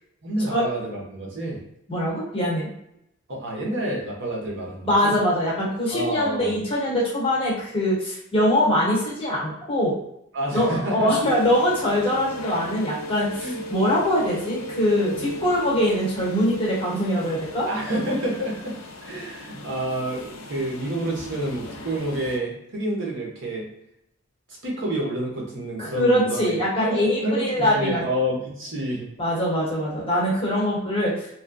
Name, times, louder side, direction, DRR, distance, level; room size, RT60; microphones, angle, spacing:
voice 1, 0.2-1.6 3.3-5.1 5.9-6.6 10.3-11.3 13.4-13.6 17.7-18.7 19.0-23.7 24.5-29.1, right 1 dB, 65° right, -2 dB, 0.9 m, -29 dB
voice 2, 1.9-2.7 4.8-10.0 10.5-17.7 25.8-28.0 29.2-31.4, equal, 25° left, -6 dB, 1.1 m, -23 dB
sound 1, 11.2-22.4, equal, 85° left, 0.5 m, -37 dB
2.9 x 2.2 x 2.5 m, 0.78 s
head